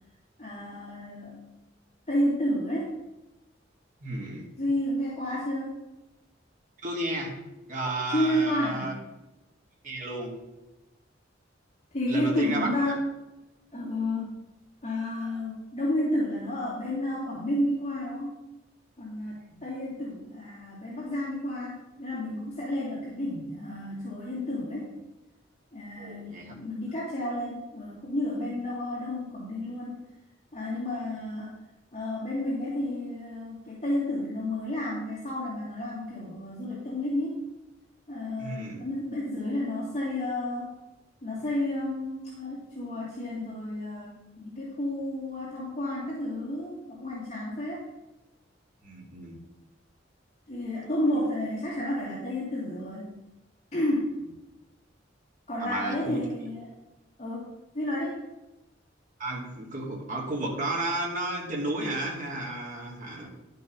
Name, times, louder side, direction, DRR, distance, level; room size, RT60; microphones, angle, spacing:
voice 1, 0.4-1.4 2.1-2.9 4.6-5.8 8.1-8.9 11.9-13.1 13.7-14.4 14.8-18.4 19.0-19.4 19.6-24.9 25.7-30.0 30.5-31.5 31.9-37.4 38.1-40.8 41.2-47.8 50.5-53.1 53.7-54.2 55.5-56.7 57.2-58.2, left 1 dB, 35° left, -8 dB, 2.6 m, -31 dB
voice 2, 4.0-4.5 6.8-7.3 7.7-8.9 9.8-10.3 12.1-12.9 19.5-19.6 26.0-26.5 38.4-38.8 48.8-49.3 55.6-56.3 59.2-63.3, right 2 dB, 45° right, -2 dB, 2.5 m, -33 dB
11.5 x 5.5 x 5.2 m, 1.0 s
head